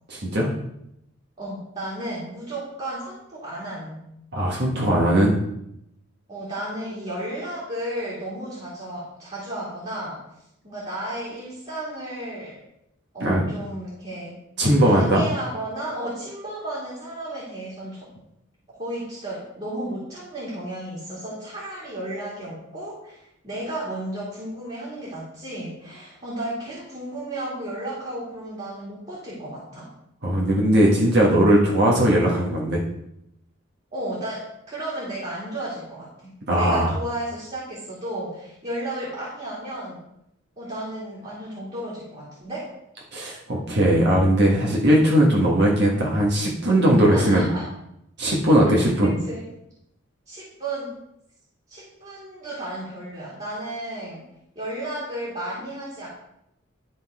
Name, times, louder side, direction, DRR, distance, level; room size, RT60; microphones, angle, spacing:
voice 1, 0.1-0.5 4.3-5.3 13.2-13.5 14.6-15.2 30.2-32.8 36.5-36.9 43.1-47.4 48.2-49.1, right 1 dB, 55° right, -3 dB, 1.4 m, -19 dB
voice 2, 1.4-4.0 6.3-10.2 10.6-12.6 13.1-14.4 14.8-18.1 18.8-29.9 33.9-40.0 40.6-42.7 47.1-47.7 48.7-49.4 50.3-51.0 51.7-54.2 54.6-56.1, right 1 dB, 30° right, -7 dB, 2.3 m, -33 dB
11.5 x 3.9 x 4.8 m, 0.80 s
head